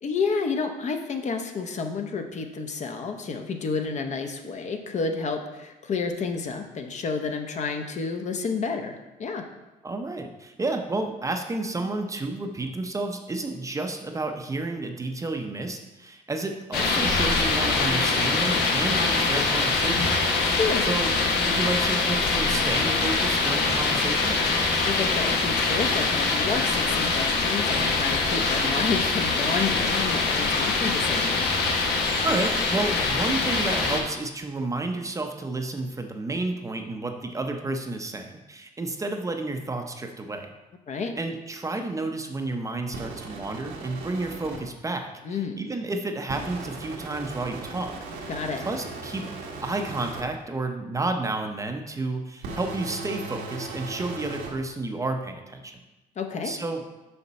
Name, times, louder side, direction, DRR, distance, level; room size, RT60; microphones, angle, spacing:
voice 1, 0.0-9.5 20.4-20.9 24.8-31.5 40.9-41.2 45.2-45.6 48.3-48.6 56.2-56.5, left 4 dB, 45° left, 5 dB, 0.8 m, -30 dB
voice 2, 9.8-20.6 20.9-21.1 21.4-24.4 32.2-40.5 41.2-47.9 48.2-48.3 48.7-49.3 49.6-55.7 56.4-56.8, right 2 dB, 20° right, 4 dB, 0.6 m, -31 dB
sound 1, 16.7-34.0, left 3 dB, 80° left, 1.2 m, -24 dB
sound 2, 42.9-44.6 46.3-50.2 52.4-54.5, right 3 dB, 90° right, 1.4 m, -38 dB
6.9 x 5.8 x 4.2 m, 1.1 s
cardioid pair, 110°, 17 cm